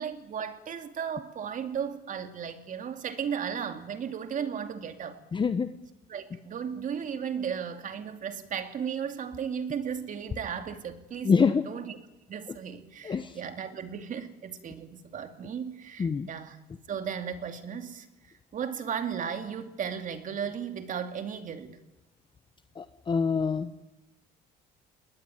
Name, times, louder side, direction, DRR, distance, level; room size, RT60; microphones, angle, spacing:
voice 1, 0.0-5.2 6.1-12.0 12.3-16.6 16.9-21.8, right 7 dB, 50° right, 8 dB, 2.6 m, -35 dB
voice 2, 5.3-5.7 11.2-11.7 12.5-12.6 13.0-13.4 16.0-16.3 22.8-23.7, left 5 dB, 30° left, 11 dB, 1.0 m, -26 dB
21.5 x 19.0 x 9.2 m, 1.0 s
cardioid pair, 110°, 17 cm